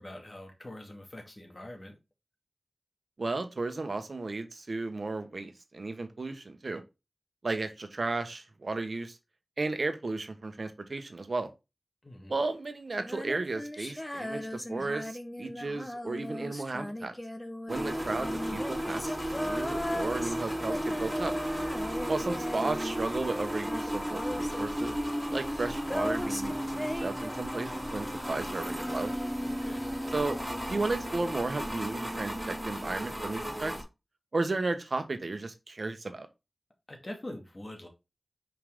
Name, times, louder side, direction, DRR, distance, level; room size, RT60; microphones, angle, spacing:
voice 1, 0.0-2.0 12.0-12.3 29.5-29.8 36.9-37.9, left 1 dB, 35° left, 2.3 m, -44 dB
voice 2, 3.2-6.8 7.4-9.2 9.6-11.5 12.3-17.1 17.7-21.3 22.1-24.9 25.3-29.1 30.1-30.4 30.7-33.7 34.3-36.3, right 3 dB, 65° right, 1.3 m, -34 dB
Female singing, 13.0-23.3 23.6-28.0, left 1 dB, 20° left, 1.0 m, -38 dB
sound 1, 17.7-33.8, equal, ahead, 3.5 m, -34 dB
5.7 x 5.0 x 3.8 m
wide cardioid pair, 65°, 0 cm